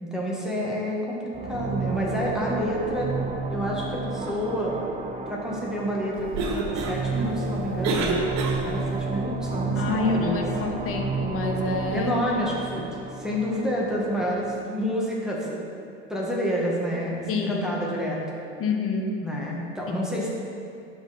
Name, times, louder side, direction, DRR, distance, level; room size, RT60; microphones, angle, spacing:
voice 1, 0.0-3.1 3.5-4.7 5.3-8.2 8.6-10.4 11.9-15.7 16.1-18.2 19.2-20.3, equal, ahead, -5 dB, 1.6 m, -29 dB
sound 1, 1.3-14.7, right 4 dB, 20° right, 0.7 m, -32 dB
Cough, 6.1-9.0, right 3 dB, 50° right, 1.3 m, -29 dB
voice 2, 9.8-12.1 17.3-17.6 18.6-19.2 19.9-20.1, left 3 dB, 40° left, 2 dB, 1.2 m, -27 dB
11.5 x 4.5 x 4.2 m, 2.5 s
hypercardioid pair, 95°, 35 cm